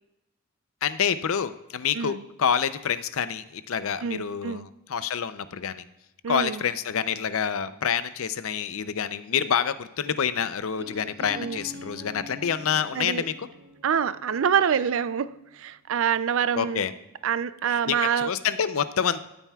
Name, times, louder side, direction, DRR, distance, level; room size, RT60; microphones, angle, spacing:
voice 1, 0.8-5.8 6.3-13.3 16.6-16.9 17.7-19.2, left 7 dB, 70° left, 13 dB, 0.5 m, -27 dB
voice 2, 4.0-4.7 6.2-6.6 11.4-11.6 12.9-13.2 13.8-16.9 17.2-18.3, right 7 dB, 65° right, 15 dB, 0.4 m, -26 dB
sound 1, 10.8-16.5, left 1 dB, 50° right, 1.4 m, -46 dB
13.5 x 9.1 x 2.3 m, 0.93 s
head